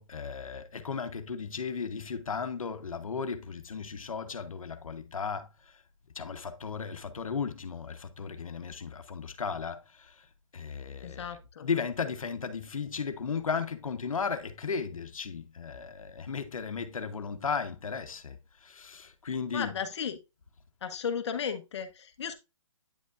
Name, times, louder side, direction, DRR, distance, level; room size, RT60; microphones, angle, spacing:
voice 1, 0.0-5.8 6.1-10.3 10.5-19.8, left 5 dB, 85° left, 1.0 m, -35 dB
voice 2, 11.0-11.7 19.5-20.2 20.8-22.3, left 7 dB, 55° left, 1.0 m, -35 dB
9.3 x 5.2 x 2.5 m
hypercardioid pair, 155°, 17 cm